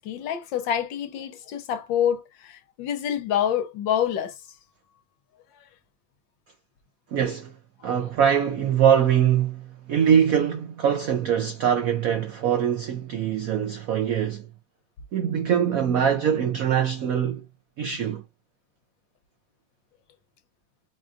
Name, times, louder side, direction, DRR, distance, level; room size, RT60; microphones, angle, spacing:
voice 1, 0.0-4.3, left 9 dB, 75° left, 1.3 m, -27 dB
voice 2, 7.1-7.5 7.8-14.5 15.1-17.4 17.8-18.2, right 8 dB, 80° right, 0.7 m, -23 dB
4.9 x 2.4 x 2.5 m
omnidirectional pair, 2.2 m